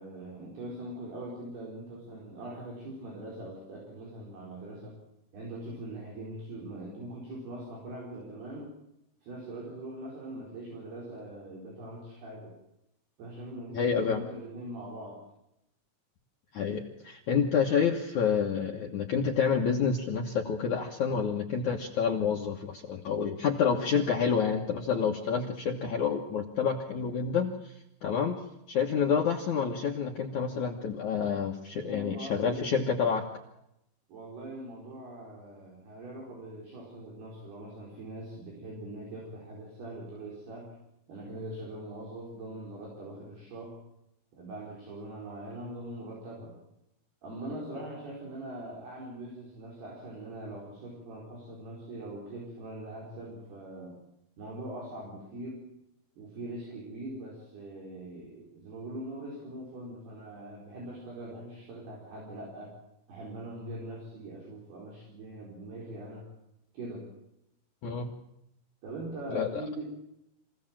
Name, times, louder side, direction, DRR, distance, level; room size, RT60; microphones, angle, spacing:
voice 1, 0.0-5.0 5.3-8.7 9.2-12.5 13.2-15.2 31.8-32.8 34.1-40.8 41.1-43.8 44.3-46.5 47.2-54.0 54.4-55.6 56.2-62.7 63.1-66.3 66.7-67.1 68.8-69.8, right 1 dB, 55° right, -3 dB, 6.3 m, -42 dB
voice 2, 13.7-14.2 16.5-27.7 28.0-28.4 28.7-33.2 47.8-47.9 67.8-68.1 69.3-69.5, left 6 dB, 75° left, 2 dB, 1.7 m, -28 dB
26.0 x 16.5 x 7.5 m, 0.84 s
omnidirectional pair, 5.7 m